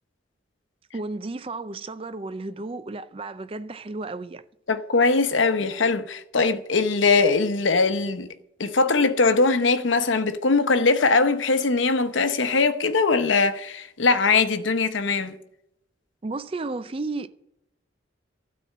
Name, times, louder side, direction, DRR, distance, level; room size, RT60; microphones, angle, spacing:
voice 1, 0.9-4.4 16.2-17.3, right 3 dB, 30° right, 0.4 m, -33 dB
voice 2, 4.7-8.3 8.6-15.4, left 4 dB, 85° left, 0.9 m, -21 dB
12.5 x 4.2 x 8.3 m
head